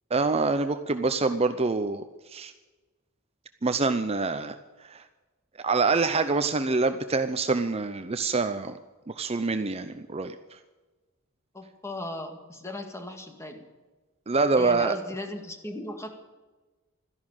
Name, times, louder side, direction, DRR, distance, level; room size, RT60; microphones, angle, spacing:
voice 1, 0.1-2.0 2.3-2.5 3.6-4.5 4.8-5.0 5.6-8.7 9.2-10.3 14.3-14.9, right 3 dB, 30° right, 9 dB, 0.6 m, -25 dB
voice 2, 11.5-13.6 14.6-16.1, left 1 dB, 15° left, 5 dB, 2.0 m, -37 dB
13.5 x 11.0 x 9.0 m, 1.2 s
head